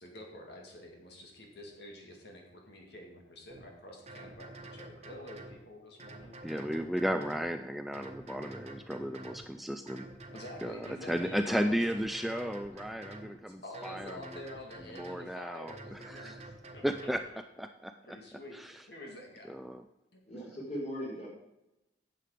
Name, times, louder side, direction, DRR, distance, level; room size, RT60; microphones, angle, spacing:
voice 1, 0.0-6.4 10.3-11.8 13.3-17.3 18.0-18.6 18.9-19.5 20.1-20.2, left 1 dB, 65° left, 0 dB, 2.2 m, -48 dB
sound 1, 3.5-3.6 4.1-5.6 6.0-7.5 7.9-9.5 9.9-11.4 11.8-13.3 13.7-15.3 15.7-17.2, right 2 dB, 35° right, 1.4 m, -48 dB
voice 2, 6.4-10.1 10.6-14.2 15.0-16.4 16.8-17.2 17.6-18.2 18.5-18.7 19.5-19.8, equal, ahead, 7 dB, 0.4 m, -34 dB
voice 3, 20.2-21.3, equal, 40° left, -3 dB, 4.0 m, -38 dB
9.9 x 7.8 x 5.0 m, 0.92 s
head